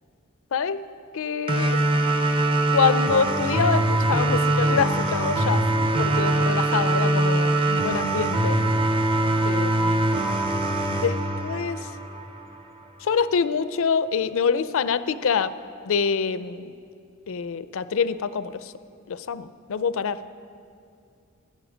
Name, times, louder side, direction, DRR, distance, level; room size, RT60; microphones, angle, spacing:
voice 1, 0.5-0.8 1.1-1.8 2.7-5.6 6.0-8.6 9.4-10.1 10.9-11.9 13.0-15.5 15.9-16.7 17.3-18.7 19.1-20.2, left 6 dB, 65° left, 15 dB, 0.4 m, -25 dB
sound 1, 1.5-12.5, right 1 dB, 25° right, 0.7 m, -22 dB
17.5 x 10.5 x 5.0 m, 2.4 s
head